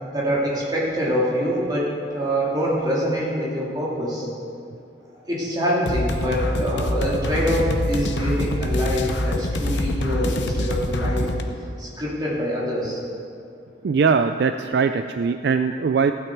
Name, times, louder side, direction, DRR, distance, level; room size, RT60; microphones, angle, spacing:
voice 1, 0.1-4.3 5.1-11.3 11.8-13.0, equal, 20° right, -6 dB, 2.7 m, -25 dB
sound 1, 5.9-11.4, left 1 dB, 65° left, 0.8 m, -25 dB
voice 2, 13.8-16.1, right 5 dB, 60° right, 9 dB, 0.3 m, -21 dB
15.5 x 9.2 x 4.6 m, 2.5 s
head